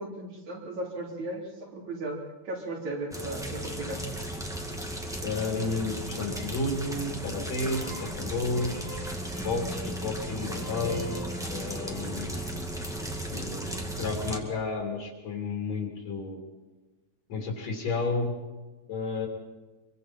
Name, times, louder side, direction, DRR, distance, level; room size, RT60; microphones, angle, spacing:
voice 1, 0.0-4.1 13.0-13.2, right 2 dB, 65° right, -1 dB, 5.1 m, -36 dB
sound 1, 3.1-14.4, right 1 dB, ahead, 1.1 m, -35 dB
voice 2, 5.2-8.7 9.4-11.2 11.5-12.3 13.3-13.7 14.0-16.4 17.3-18.3 18.9-19.3, left 3 dB, 60° left, -1 dB, 4.3 m, -31 dB
sound 2, 7.6-13.1, right 1 dB, 90° right, 8.1 m, -48 dB
26.0 x 23.5 x 4.4 m, 1.2 s
omnidirectional pair, 3.5 m